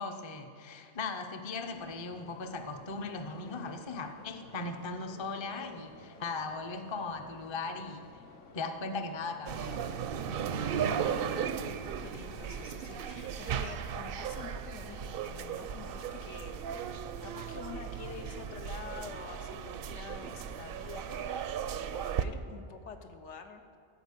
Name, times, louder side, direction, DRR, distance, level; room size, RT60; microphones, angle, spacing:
voice 1, 0.0-8.0 8.5-9.8, left 3 dB, 30° left, 6 dB, 0.6 m, -38 dB
sound 1, 1.6-21.3, left 4 dB, 55° left, 0.9 m, -54 dB
sound 2, 9.5-22.2, right 8 dB, 65° right, 0.7 m, -36 dB
voice 2, 10.8-11.7 12.0-16.9 17.2-21.4 21.8-23.6, left 5 dB, 85° left, 6 dB, 1.2 m, -47 dB
13.0 x 5.3 x 8.3 m, 2.3 s
omnidirectional pair, 1.2 m